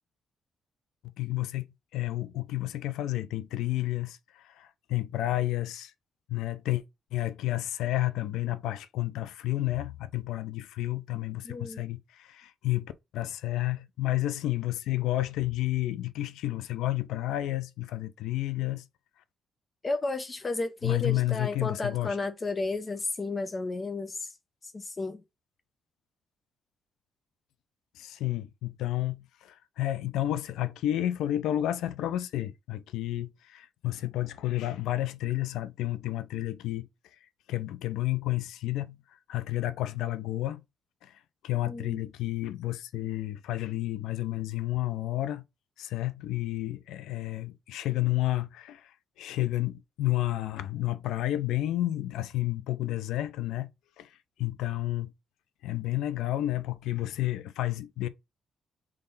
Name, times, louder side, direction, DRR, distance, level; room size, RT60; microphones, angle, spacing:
voice 1, 1.2-5.9 6.3-6.8 7.1-18.8 20.8-22.2 28.0-36.9 37.5-39.0 39.3-40.6 41.0-45.4 45.8-53.7 54.0-55.1 55.6-58.1, left 15 dB, 85° left, 0.5 m, -31 dB
voice 2, 11.4-11.8 19.8-24.3 24.7-25.2 41.6-42.0, left 3 dB, 30° left, 0.7 m, -32 dB
3.8 x 3.2 x 4.0 m
cardioid pair, 90°, 0 cm